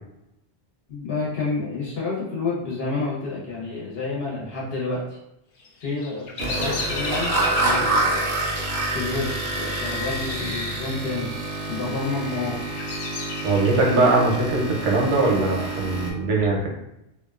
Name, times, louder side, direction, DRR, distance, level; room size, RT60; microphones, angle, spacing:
voice 1, 0.9-5.2 5.8-8.6 8.9-11.3 11.7-12.6, left 3 dB, 60° left, -5 dB, 1.1 m, -29 dB
Bird vocalization bird call bird song, 5.6-10.6 10.9-11.5 12.1-14.1, left 3 dB, 80° left, 0.9 m, -34 dB
sound 1, 6.4-16.1, right 2 dB, 55° right, 0.7 m, -27 dB
voice 2, 13.4-16.7, right 2 dB, 85° right, -1 dB, 1.0 m, -21 dB
2.6 x 2.3 x 2.3 m, 0.85 s
omnidirectional pair, 1.2 m